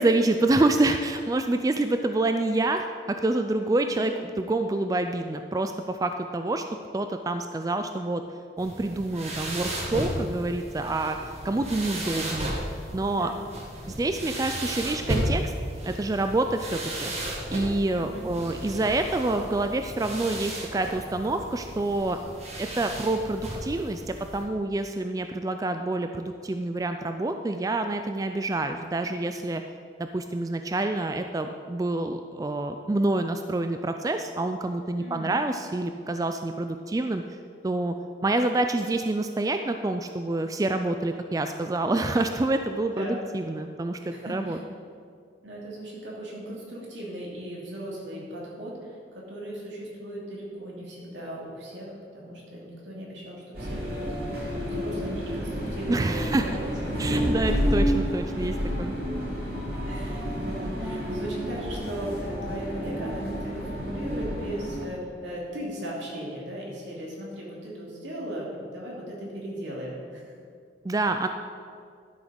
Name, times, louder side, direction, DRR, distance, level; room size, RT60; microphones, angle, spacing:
voice 1, 0.0-6.6 6.9-8.2 8.6-12.5 12.9-13.3 13.9-15.5 15.8-17.1 17.5-22.2 22.6-29.6 30.0-37.2 37.6-37.9 38.2-44.6 55.9-56.5 57.0-59.0 70.8-71.3, right 2 dB, 20° right, 7 dB, 0.3 m, -27 dB
voice 2, 3.8-4.2 13.1-13.4 18.0-18.3 35.0-35.3 42.9-43.2 44.1-44.6 45.4-56.7 59.8-70.3, right 1 dB, 80° right, -4 dB, 2.7 m, -37 dB
sound 1, 8.6-24.4, right 1 dB, 35° right, 1.5 m, -34 dB
sound 2, 53.5-64.9, equal, 55° right, 2.8 m, -30 dB
11.5 x 6.3 x 5.3 m, 2.2 s
head